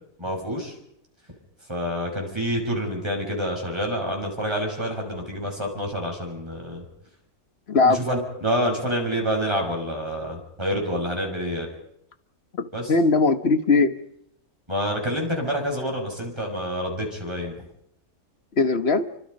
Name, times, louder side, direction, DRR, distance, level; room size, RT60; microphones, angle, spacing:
voice 1, 0.2-0.7 1.7-6.8 7.8-11.7 12.7-12.9 14.7-17.5, equal, 15° right, 1 dB, 6.3 m, -27 dB
voice 2, 7.7-8.1 12.5-14.0 18.6-19.0, left 3 dB, 45° left, 10 dB, 1.3 m, -20 dB
28.5 x 25.0 x 5.4 m, 0.74 s
omnidirectional pair, 1.6 m